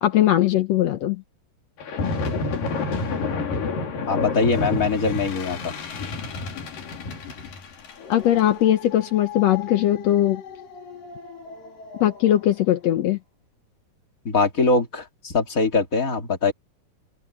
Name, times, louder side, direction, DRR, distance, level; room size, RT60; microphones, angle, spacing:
voice 1, 0.0-1.2 8.1-10.4 12.0-13.2, left 12 dB, 80° left, 1.5 m, -20 dB
sound 1, 1.8-12.4, left 3 dB, 60° left, 4.8 m, -31 dB
voice 2, 3.3-3.6 4.1-5.7 14.2-16.5, left 4 dB, 25° left, 2.7 m, -22 dB
open air
omnidirectional pair, 4.4 m